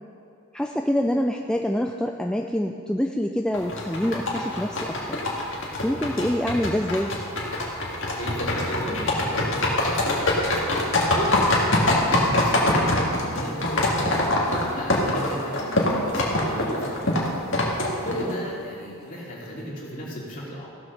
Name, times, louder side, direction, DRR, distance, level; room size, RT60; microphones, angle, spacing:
voice 1, 0.5-5.0 5.8-7.1, equal, 5° left, 2 dB, 0.3 m, -25 dB
sound 1, 3.5-18.5, left 1 dB, 60° left, 2.0 m, -24 dB
voice 2, 8.2-10.5 11.1-17.2 18.0-20.7, equal, 40° left, -5 dB, 2.7 m, -34 dB
15.5 x 6.3 x 6.5 m, 2.6 s
head